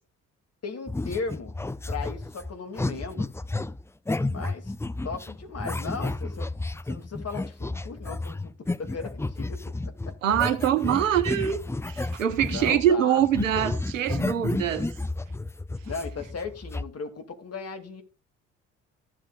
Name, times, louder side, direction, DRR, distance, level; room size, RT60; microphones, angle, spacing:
voice 1, 0.6-1.6 1.9-3.3 4.3-4.7 5.0-6.5 6.8-10.1 12.5-13.2 15.8-18.0, left 4 dB, 40° left, 2.5 m, -37 dB
sound 1, 0.9-12.9 13.2-16.8, left 2 dB, 5° left, 0.5 m, -32 dB
voice 2, 10.2-11.6 11.9-14.9, right 10 dB, 90° right, 0.9 m, -24 dB
14.5 x 7.8 x 2.4 m
hypercardioid pair, 45°, 37 cm